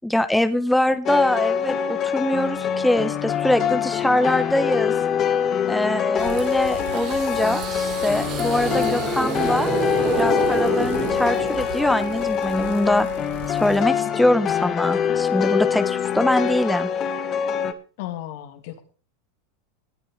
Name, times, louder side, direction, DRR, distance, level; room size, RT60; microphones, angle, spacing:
voice 1, 0.0-4.9 5.7-9.7 10.1-13.1 13.5-16.9, left 1 dB, 5° left, 10 dB, 1.1 m, -23 dB
sound 1, 1.1-17.7, left 8 dB, 35° left, 1.8 m, -24 dB
Bicycle, 6.2-13.9, right 10 dB, 65° right, 1.5 m, -39 dB
sound 2, 6.9-12.0, right 8 dB, 40° right, 3.4 m, -29 dB
voice 2, 18.0-18.8, left 13 dB, 65° left, 6 dB, 2.6 m, -34 dB
19.0 x 9.0 x 4.0 m, 0.38 s
hypercardioid pair, 100°, 0 cm